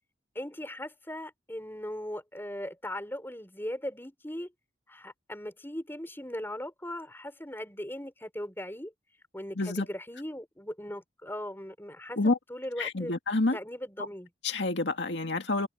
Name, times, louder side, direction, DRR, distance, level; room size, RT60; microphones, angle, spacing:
voice 1, 0.3-4.5 4.9-8.9 9.3-13.1 13.5-14.3, left 1 dB, 10° left, 5.5 m, -39 dB
voice 2, 12.8-13.6 14.4-15.7, left 2 dB, 80° left, 2.0 m, -28 dB
head